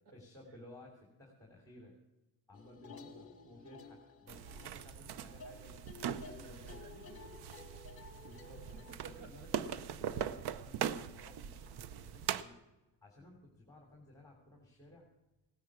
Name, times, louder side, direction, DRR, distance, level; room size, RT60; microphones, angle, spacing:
voice 1, 0.1-1.9 2.5-6.9 8.2-8.8 9.2-12.5 13.0-15.1, left 1 dB, 10° left, -1 dB, 3.1 m, -57 dB
sound 1, 2.5-8.9, left 5 dB, 35° left, 1.4 m, -54 dB
voice 2, 3.0-3.5 6.3-8.2 8.9-9.3, right 2 dB, 90° right, 6 dB, 2.2 m, -57 dB
sound 2, 4.3-12.4, right 9 dB, 70° right, 0.8 m, -41 dB
17.0 x 10.0 x 6.1 m, 1.1 s
cardioid pair, 105°, 41 cm